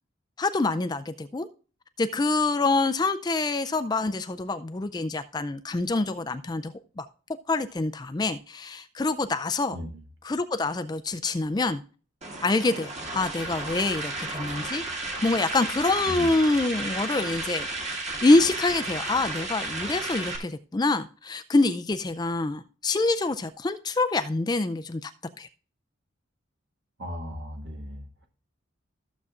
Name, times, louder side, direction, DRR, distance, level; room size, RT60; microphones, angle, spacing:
voice 1, 0.4-1.5 2.0-7.1 7.5-9.8 10.2-11.8 12.4-14.8 15.2-17.7 17.9-25.1 25.4-25.5, left 3 dB, 20° left, 0.3 m, -26 dB
sound 1, 12.2-20.4, right 2 dB, 35° right, 1.9 m, -33 dB
voice 2, 16.0-16.3 27.0-28.3, equal, 60° right, 1.8 m, -37 dB
14.5 x 7.2 x 2.5 m
head